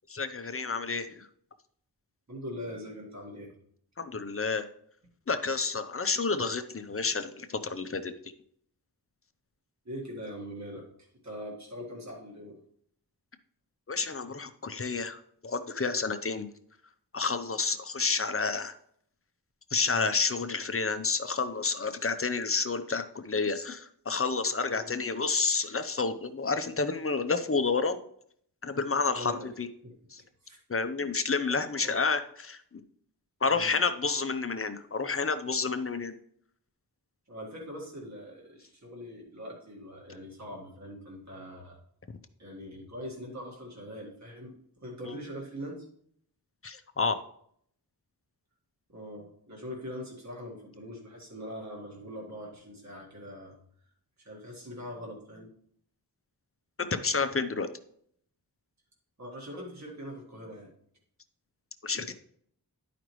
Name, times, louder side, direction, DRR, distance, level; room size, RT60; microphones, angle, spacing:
voice 1, 0.1-1.3 4.0-4.7 5.3-8.1 13.9-16.5 17.1-18.7 19.7-28.0 28.6-29.3 29.6-29.7 30.7-32.6 33.4-36.1 45.0-45.2 46.6-47.2 56.8-57.7 61.8-62.2, left 4 dB, 35° left, 9 dB, 0.7 m, -30 dB
voice 2, 2.3-3.5 9.9-12.6 24.7-25.0 29.1-29.5 29.8-30.6 31.0-31.1 31.8-32.0 33.4-33.8 37.3-41.8 42.4-45.9 48.9-53.6 54.2-55.5 59.2-60.7, equal, 45° right, -1 dB, 1.8 m, -42 dB
11.0 x 5.0 x 3.1 m, 0.65 s
wide cardioid pair, 95°, 39 cm